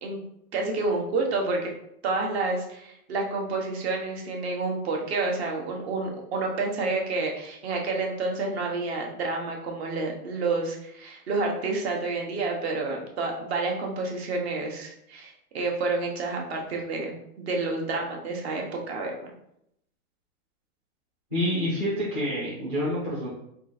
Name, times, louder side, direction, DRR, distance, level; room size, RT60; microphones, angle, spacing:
voice 1, 0.5-1.7 2.0-19.1, right 3 dB, 45° right, 1 dB, 1.0 m, -29 dB
voice 2, 21.3-23.3, equal, 10° right, -10 dB, 0.4 m, -27 dB
3.7 x 2.5 x 4.1 m, 0.76 s
hypercardioid pair, 160°, 44 cm